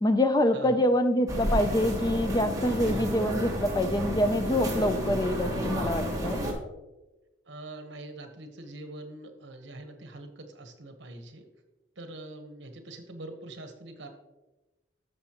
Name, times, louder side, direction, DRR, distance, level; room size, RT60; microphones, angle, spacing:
voice 1, 0.0-6.4, left 1 dB, 20° left, 10 dB, 0.4 m, -25 dB
voice 2, 0.5-0.8 2.9-3.0 7.4-11.5 12.0-14.1, right 2 dB, 65° right, 6 dB, 1.1 m, -43 dB
sound 1, 1.3-6.5, equal, 20° right, 1.3 m, -31 dB
10.5 x 6.7 x 2.9 m, 1.1 s
head